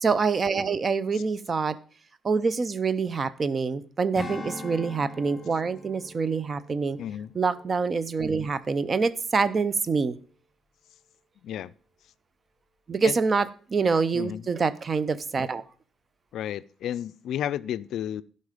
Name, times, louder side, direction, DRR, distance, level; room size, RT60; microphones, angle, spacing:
voice 1, 0.0-1.8 2.2-7.0 7.4-10.2 12.9-15.6, right 4 dB, 40° right, 17 dB, 0.6 m, -26 dB
Strum, 4.2-8.9 9.2-9.5, left 2 dB, 35° left, 2.3 m, -42 dB
voice 2, 7.0-7.3 11.4-11.7 13.0-13.2 14.1-14.4 16.3-18.2, left 10 dB, 75° left, 17 dB, 0.3 m, -32 dB
12.0 x 5.5 x 5.0 m, 0.42 s
cardioid pair, 90°, 0 cm